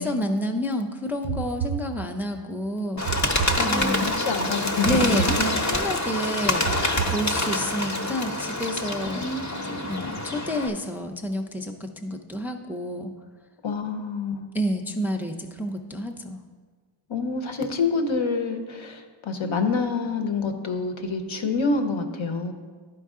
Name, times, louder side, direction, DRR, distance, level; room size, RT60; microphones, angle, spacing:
voice 1, 0.0-3.0 3.6-4.1 4.8-6.7 7.1-9.2 9.9-13.1 14.5-16.4, equal, 5° right, 3 dB, 0.4 m, -29 dB
sound 1, 1.2-2.4 3.1-4.2 4.8-6.0 6.6-7.8, right 8 dB, 90° right, 0.6 m, -32 dB
Bird, 3.0-10.7, left 2 dB, 35° left, 0.8 m, -26 dB
voice 2, 3.5-5.4 6.8-7.0 9.1-9.8 13.6-14.5 17.1-22.5, left 4 dB, 70° left, 6 dB, 0.9 m, -27 dB
11.0 x 4.6 x 3.7 m, 1.5 s
wide cardioid pair, 65°, 50 cm